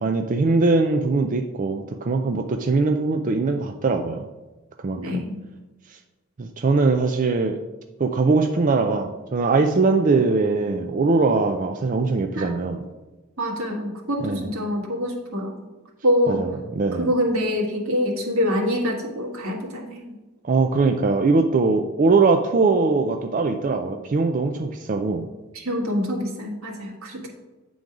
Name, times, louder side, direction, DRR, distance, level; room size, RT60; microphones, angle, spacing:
voice 1, 0.0-4.3 4.8-5.2 5.9-6.0 6.4-7.6 8.0-12.8 14.2-14.5 16.3-17.1 20.4-25.3, right 3 dB, 40° right, 4 dB, 0.4 m, -21 dB
voice 2, 5.0-5.4 12.4-12.5 13.4-15.6 16.0-16.4 17.0-20.0 25.6-27.3, equal, 85° right, -1 dB, 1.7 m, -25 dB
9.0 x 3.9 x 4.7 m, 1.2 s
head